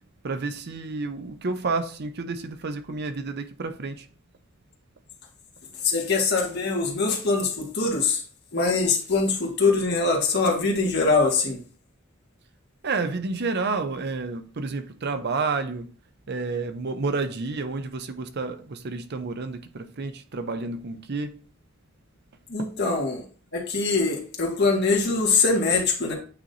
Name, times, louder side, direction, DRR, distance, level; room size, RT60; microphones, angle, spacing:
voice 1, 0.2-4.0 12.8-15.9 16.3-21.3, right 3 dB, 50° right, 0.6 m, -30 dB
voice 2, 5.8-8.2 8.5-11.6 22.5-23.2 23.5-26.1, left 4 dB, 55° left, 1.8 m, -23 dB
8.6 x 3.0 x 3.9 m
head